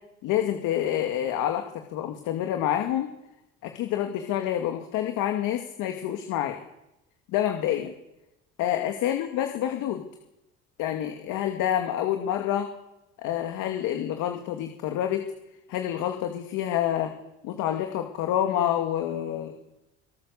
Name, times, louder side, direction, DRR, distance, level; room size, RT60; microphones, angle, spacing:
voice 1, 0.2-1.6 1.9-3.1 3.6-6.6 7.3-7.9 8.6-10.1 10.8-12.7 13.2-15.3 15.7-17.1 17.4-19.6, left 11 dB, 75° left, 4 dB, 2.3 m, -27 dB
25.0 x 18.0 x 7.0 m, 0.92 s
supercardioid pair, 85°, 32 cm